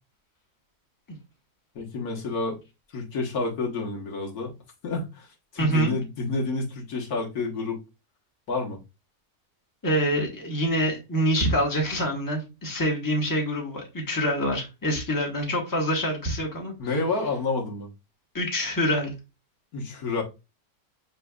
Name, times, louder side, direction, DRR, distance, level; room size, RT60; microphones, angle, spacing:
voice 1, 1.8-2.6 2.9-4.5 4.8-5.3 5.5-7.8 8.5-8.8 16.8-17.9 19.7-20.2, left 3 dB, 80° left, 1.7 m, -29 dB
voice 2, 5.6-6.0 9.8-16.7 18.3-19.1, equal, 15° left, 1.3 m, -25 dB
6.7 x 3.4 x 2.3 m
omnidirectional pair, 1.6 m